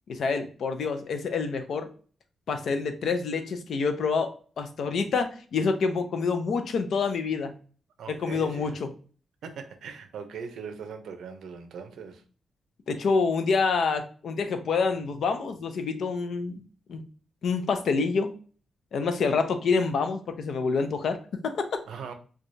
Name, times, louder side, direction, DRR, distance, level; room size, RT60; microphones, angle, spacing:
voice 1, 0.1-1.9 2.5-7.5 8.1-8.9 12.9-16.6 16.9-17.0 17.4-18.3 18.9-21.8, left 4 dB, 60° left, 0.5 m, -27 dB
voice 2, 8.0-8.8 9.4-12.2 21.9-22.1, right 6 dB, 80° right, 0.6 m, -40 dB
4.6 x 2.3 x 2.6 m
wide cardioid pair, 165°, 0 cm